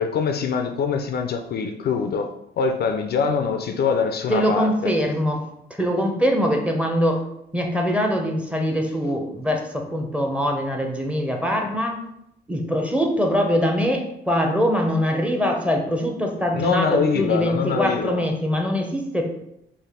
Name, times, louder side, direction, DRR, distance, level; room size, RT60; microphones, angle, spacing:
voice 1, 0.0-2.3 2.6-4.9 16.5-18.3, left 5 dB, 55° left, 5 dB, 0.4 m, -23 dB
voice 2, 4.3-7.2 7.5-12.0 12.5-19.2, equal, 5° right, 2 dB, 0.6 m, -23 dB
3.2 x 2.5 x 3.6 m, 0.81 s
cardioid pair, 90°, 20 cm